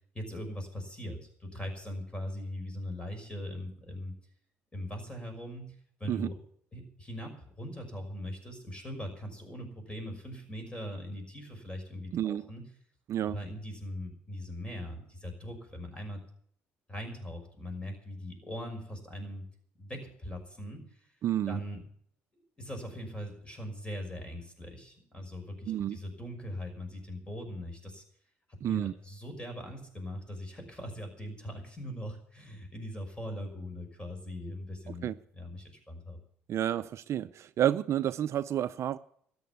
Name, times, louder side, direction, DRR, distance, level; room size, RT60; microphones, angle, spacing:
voice 1, 0.1-4.1 4.7-6.4 6.7-12.6 13.2-16.2 16.9-19.4 19.8-21.1 21.5-21.8 22.6-28.0 28.6-36.2, equal, 20° left, 5.8 m, -41 dB
voice 2, 12.1-12.4 13.1-13.4 21.2-21.6 25.7-26.0 28.6-28.9 34.9-35.1 36.5-39.0, right 11 dB, 55° right, 0.5 m, -30 dB
13.5 x 8.8 x 9.4 m
supercardioid pair, 65°, 6 cm